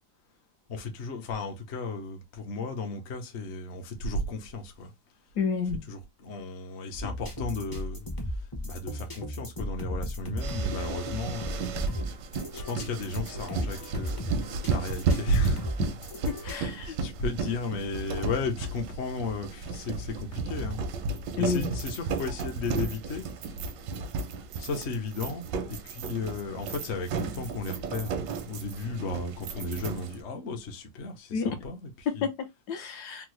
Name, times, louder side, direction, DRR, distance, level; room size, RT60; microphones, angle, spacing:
voice 1, 0.7-4.9 5.7-11.8 12.5-14.3 14.6-15.7 16.5-20.8 21.4-23.3 24.6-28.2 28.5-32.3, left 2 dB, 55° left, 0.8 m, -34 dB
voice 2, 5.4-5.8 16.4-17.0 21.4-21.7 31.3-31.5 32.2-33.3, left 6 dB, 70° left, 1.1 m, -30 dB
sound 1, 6.9-16.6, equal, 35° left, 0.3 m, -36 dB
sound 2, 10.4-30.2, right 4 dB, 85° right, 1.2 m, -34 dB
3.6 x 2.0 x 3.0 m
omnidirectional pair, 1.9 m